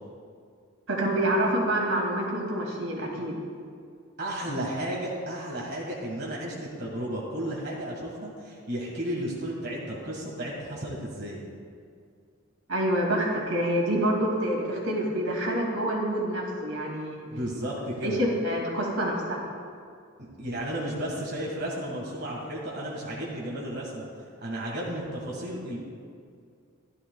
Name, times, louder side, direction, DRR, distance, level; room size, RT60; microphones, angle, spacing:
voice 1, 0.9-3.4 12.7-17.3 18.0-19.4, right 1 dB, 85° right, -2 dB, 2.3 m, -27 dB
voice 2, 4.2-11.4 17.3-18.2 20.2-24.0 24.4-25.8, right 1 dB, 50° right, -4 dB, 1.6 m, -33 dB
15.0 x 11.5 x 2.3 m, 2.3 s
head